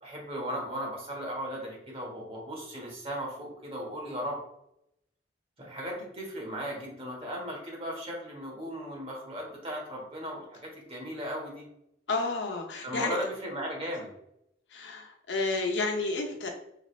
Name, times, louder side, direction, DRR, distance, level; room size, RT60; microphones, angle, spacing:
voice 1, 0.0-4.4 5.6-11.6 12.8-14.1, equal, 35° right, -2 dB, 1.4 m, -36 dB
voice 2, 12.1-13.3 14.7-16.5, left 3 dB, 85° left, 2 dB, 0.8 m, -31 dB
5.0 x 2.5 x 3.2 m, 0.79 s
head